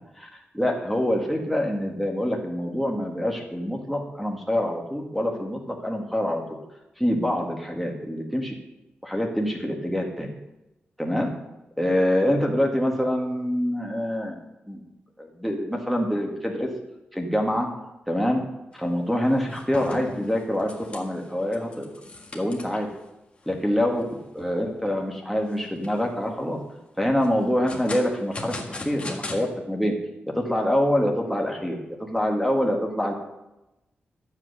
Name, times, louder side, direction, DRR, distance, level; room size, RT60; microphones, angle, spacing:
voice 1, 0.5-6.6 7.0-8.5 9.0-10.3 11.0-11.3 11.8-14.3 14.7-14.9 15.2-16.7 17.1-17.7 18.1-18.4 18.7-21.9 22.3-22.9 23.5-24.0 24.3-26.6 27.0-29.9 30.3-31.8 32.1-33.1, equal, ahead, 0 dB, 1.8 m, -25 dB
sound 1, 18.7-18.9 19.2-23.0 23.4-23.5 24.0-24.1 24.5-25.0 25.5-26.2 27.2-29.4, left 2 dB, 30° left, 1.7 m, -38 dB
12.0 x 8.1 x 6.6 m, 0.94 s
wide cardioid pair, 165°, 4 cm